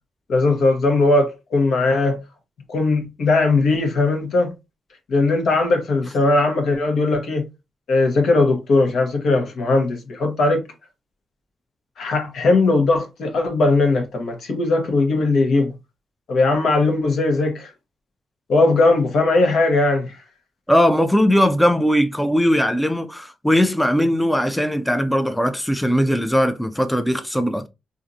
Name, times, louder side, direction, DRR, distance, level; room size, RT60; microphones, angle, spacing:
voice 1, 0.3-2.2 2.7-4.5 5.1-7.5 7.9-10.6 12.0-15.7 16.3-17.7 18.5-20.2, left 3 dB, 70° left, 1.0 m, -19 dB
voice 2, 20.7-27.7, equal, 5° left, 0.4 m, -19 dB
3.6 x 2.5 x 2.6 m
cardioid pair, 65°, 0 cm